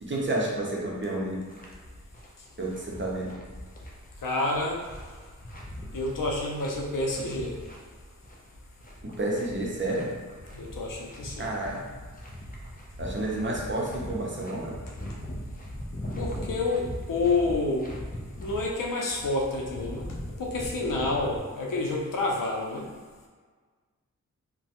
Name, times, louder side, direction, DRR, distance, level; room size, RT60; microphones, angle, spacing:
voice 1, 0.0-1.4 2.6-3.4 9.0-10.1 11.4-11.8 13.0-14.7, right 1 dB, 35° right, -3 dB, 0.7 m, -30 dB
sound 1, 1.5-21.4, equal, 25° left, 0.5 m, -41 dB
voice 2, 4.2-4.9 5.9-7.6 10.5-11.5 16.2-17.9 18.4-20.1 20.4-22.9, left 2 dB, 80° left, -1 dB, 0.6 m, -29 dB
3.1 x 2.2 x 2.9 m, 1.5 s
wide cardioid pair, 65°, 32 cm